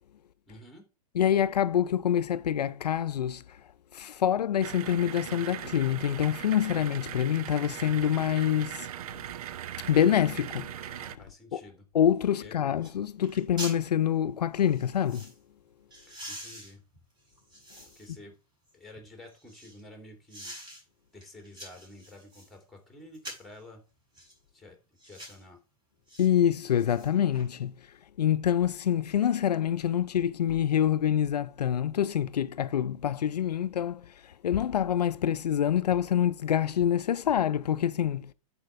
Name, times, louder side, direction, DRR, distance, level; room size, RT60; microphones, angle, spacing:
voice 1, 0.5-0.9 11.2-11.9 12.4-12.7 16.1-16.8 17.9-18.4 18.7-20.5 21.1-23.8 24.5-24.8 25.0-25.6, left 1 dB, ahead, 2.9 m, -50 dB
voice 2, 1.1-3.4 3.9-8.9 9.9-10.7 11.0-11.1 11.5-11.6 11.9-15.3 26.2-27.7 28.2-38.3, left 10 dB, 85° left, 0.5 m, -26 dB
sound 1, 4.6-11.2, right 11 dB, 65° right, 0.6 m, -39 dB
sound 2, 12.3-12.4 12.8-13.0 13.2-13.8 14.6-15.4 15.9-18.2 18.7-19.8 20.3-20.8 21.2-22.5 23.1-23.6 24.1-24.4 25.0-25.4 26.1-26.3 26.6-27.5 27.8-27.9, right 1 dB, 20° right, 5.2 m, -45 dB
10.0 x 4.5 x 4.7 m
hypercardioid pair, 120°, 20 cm